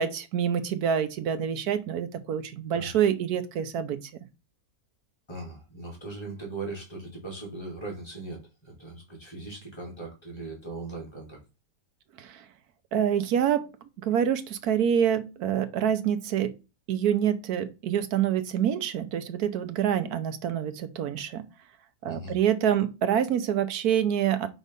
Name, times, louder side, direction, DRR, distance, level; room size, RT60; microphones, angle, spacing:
voice 1, 0.0-4.0 12.2-12.4 12.9-13.7 14.0-16.6 16.9-21.4 22.0-24.5, right 9 dB, 80° right, 1.3 m, -26 dB
voice 2, 5.3-11.4 22.0-22.4, right 3 dB, 15° left, 2.6 m, -39 dB
5.0 x 4.1 x 5.3 m
omnidirectional pair, 1.6 m